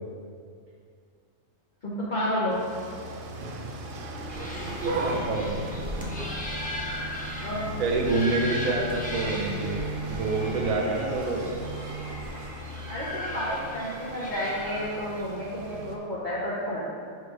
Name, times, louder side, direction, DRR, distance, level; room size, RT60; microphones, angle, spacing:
voice 1, 1.8-2.6 7.4-7.8 12.9-16.9, equal, 40° left, -8 dB, 0.9 m, -31 dB
sound 1, 2.5-16.0, right 1 dB, 55° right, 0.6 m, -36 dB
sound 2, 4.3-15.3, equal, 10° left, 0.5 m, -37 dB
voice 2, 5.0-5.6 7.8-9.8 10.1-11.5, right 3 dB, 85° right, 0 dB, 1.3 m, -27 dB
5.2 x 4.6 x 4.7 m, 2.2 s
omnidirectional pair, 1.4 m